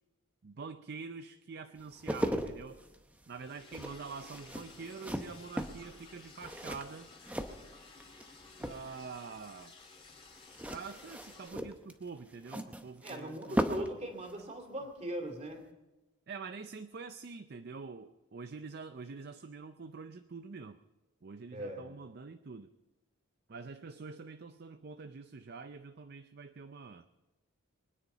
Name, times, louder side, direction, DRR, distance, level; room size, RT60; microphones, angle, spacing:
voice 1, 0.4-2.8 3.3-7.1 8.6-9.7 10.7-13.9 16.3-20.8 21.2-22.7 23.5-27.1, right 4 dB, 50° right, 10 dB, 0.5 m, -46 dB
sound 1, 1.8-8.3 8.5-9.2 10.5-14.0 14.2-14.4, equal, 5° right, 0.8 m, -38 dB
Liquid, 3.3-11.5, left 4 dB, 25° left, 2.6 m, -55 dB
voice 2, 13.0-15.7 21.5-21.9, right 1 dB, 30° right, 5 dB, 2.7 m, -40 dB
23.0 x 10.0 x 5.6 m, 1.1 s
head